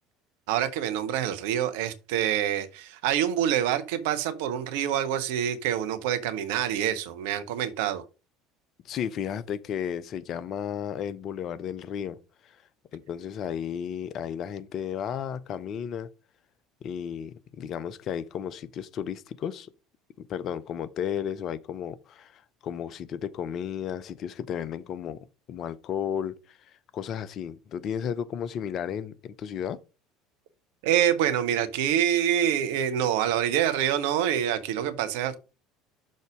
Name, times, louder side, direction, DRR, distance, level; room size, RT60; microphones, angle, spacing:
voice 1, 0.5-8.0 30.8-35.4, right 10 dB, 65° right, 0.8 m, -26 dB
voice 2, 8.8-12.5 12.9-16.1 16.8-19.7 20.2-29.8, left 8 dB, 45° left, 0.7 m, -34 dB
6.5 x 4.0 x 4.9 m
figure-of-eight pair, 65°, 0 cm